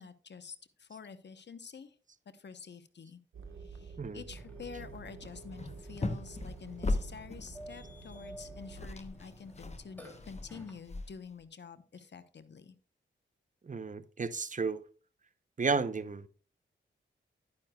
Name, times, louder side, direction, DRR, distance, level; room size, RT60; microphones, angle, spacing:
voice 1, 0.0-2.0 2.3-3.2 3.6-12.8, left 5 dB, 55° left, 1.0 m, -48 dB
sound 1, 3.3-8.9, right 5 dB, 80° right, 1.3 m, -49 dB
Burping eructation, 4.4-10.7, left 1 dB, 10° left, 3.1 m, -53 dB
sound 2, 4.8-5.0 5.2-7.6 8.4-8.5 8.6-11.4, left 2 dB, 30° left, 1.0 m, -38 dB
voice 2, 13.6-14.8 15.6-16.3, right 4 dB, 40° right, 0.8 m, -32 dB
10.5 x 9.7 x 2.3 m
cardioid pair, 55°, 21 cm